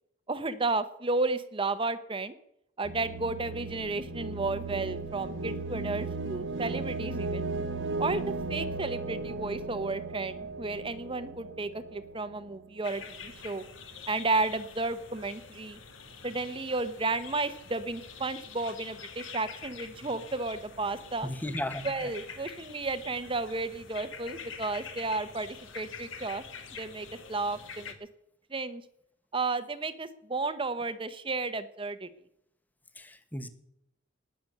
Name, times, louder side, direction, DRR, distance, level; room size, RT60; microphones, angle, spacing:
voice 1, 0.3-2.3 2.8-7.5 8.0-13.6 14.1-15.8 16.2-21.3 21.8-26.4 26.8-27.9 28.5-28.8 29.3-32.1, right 3 dB, 25° right, 13 dB, 0.9 m, -33 dB
sound 1, 2.8-12.7, right 3 dB, 65° right, 0.9 m, -36 dB
sound 2, 12.8-27.9, left 6 dB, 80° left, 2.1 m, -46 dB
voice 2, 21.2-21.9 33.0-33.5, left 1 dB, 10° left, 10 dB, 1.1 m, -35 dB
20.0 x 7.8 x 6.7 m, 0.77 s
head